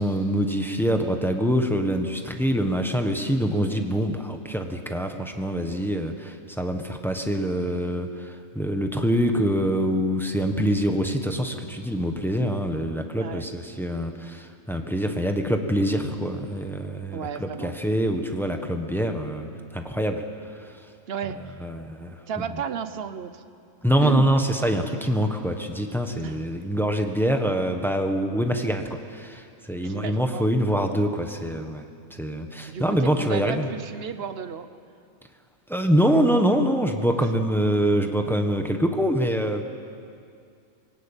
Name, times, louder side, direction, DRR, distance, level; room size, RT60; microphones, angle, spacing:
voice 1, 0.0-19.5 19.7-20.2 20.6-20.7 21.6-22.2 23.8-31.8 32.1-33.7 35.7-39.6, equal, ahead, 4 dB, 1.3 m, -25 dB
voice 2, 17.1-17.8 21.1-21.6 22.3-23.4 24.0-24.3 26.2-26.4 29.8-30.5 32.7-34.7 37.2-37.3, right 8 dB, 50° right, 11 dB, 1.1 m, -33 dB
21.5 x 17.5 x 9.0 m, 2.4 s
omnidirectional pair, 1.4 m